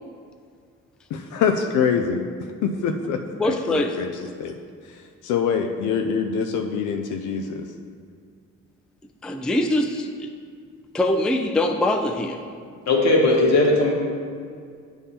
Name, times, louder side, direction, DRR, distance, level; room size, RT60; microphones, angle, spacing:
voice 1, 1.1-2.3 2.6-4.1 4.4-4.6 4.9-7.7, left 6 dB, 90° left, 4 dB, 0.5 m, -25 dB
voice 2, 3.4-4.0 9.2-10.3 10.9-12.4, left 1 dB, 5° left, 5 dB, 0.3 m, -23 dB
voice 3, 12.9-13.9, left 2 dB, 60° left, -1 dB, 1.3 m, -18 dB
8.3 x 3.5 x 4.3 m, 2.2 s
cardioid pair, 90°, 30 cm